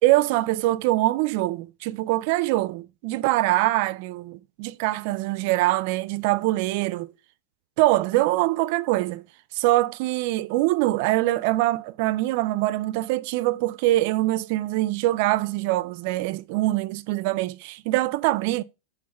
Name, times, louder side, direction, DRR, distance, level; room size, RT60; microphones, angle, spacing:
voice 1, 0.0-7.1 7.8-9.3 9.5-18.6, right 17 dB, 50° right, 0.4 m, -23 dB
5.5 x 3.6 x 5.4 m
supercardioid pair, 150°, 0 cm